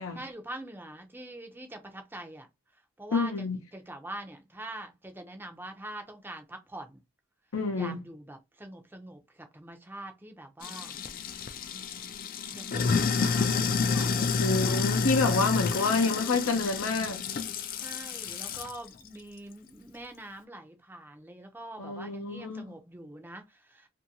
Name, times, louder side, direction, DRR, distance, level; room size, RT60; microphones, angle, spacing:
voice 1, 0.2-2.5 3.0-7.0 7.7-11.0 11.7-12.1 12.5-15.3 15.8-15.9 17.8-23.9, right 1 dB, 10° right, 0.5 m, -44 dB
voice 2, 3.1-3.6 7.5-8.0 14.4-17.2 21.8-22.7, left 3 dB, 80° left, 0.7 m, -28 dB
Sink (filling or washing), 10.6-18.8, left 5 dB, 40° left, 0.3 m, -29 dB
2.7 x 2.6 x 2.7 m
head